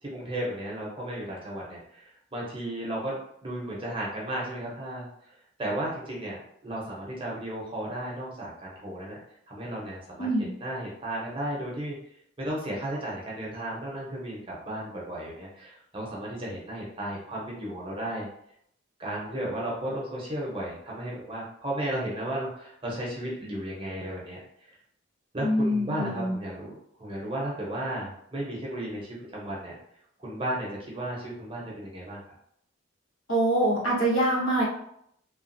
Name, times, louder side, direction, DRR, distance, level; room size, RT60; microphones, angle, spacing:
voice 1, 0.0-5.1 5.6-9.2 9.5-12.0 12.4-18.3 19.0-24.7 25.3-26.7 27.0-29.8 30.2-32.2, right 1 dB, 25° right, -4 dB, 0.7 m, -34 dB
voice 2, 10.2-10.5 25.4-26.3 33.3-34.6, right 1 dB, 80° left, -6 dB, 1.2 m, -24 dB
2.9 x 2.3 x 2.6 m, 0.71 s
head